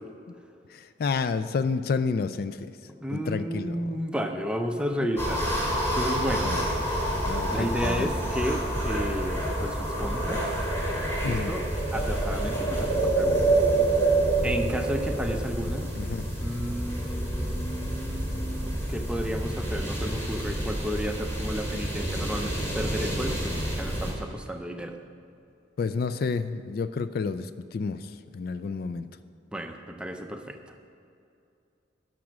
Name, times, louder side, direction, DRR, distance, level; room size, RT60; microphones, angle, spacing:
voice 1, 0.7-2.7 3.1-3.8 5.7-5.8 6.4-6.6 7.3-8.1 11.2-11.5 16.0-16.3 23.2-23.6 25.8-29.1, left 4 dB, 50° left, 11 dB, 0.3 m, -30 dB
voice 2, 3.0-5.5 5.9-6.5 7.5-10.4 11.2-11.6 11.9-13.4 14.4-15.9 16.4-25.0 29.5-30.6, equal, 5° right, 4 dB, 0.6 m, -32 dB
sound 1, 5.2-24.1, right 1 dB, 15° left, 2.5 m, -28 dB
12.0 x 6.1 x 6.2 m, 2.6 s
head